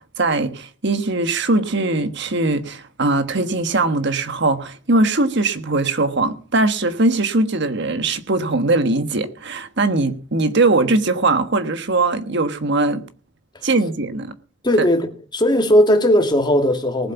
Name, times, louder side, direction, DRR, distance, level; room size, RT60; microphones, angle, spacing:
voice 1, 0.2-13.0 13.6-14.3, right 2 dB, 60° right, 1.4 m, -20 dB
voice 2, 14.6-15.1 15.3-17.1, equal, 25° left, 2.3 m, -17 dB
19.5 x 8.0 x 5.9 m
head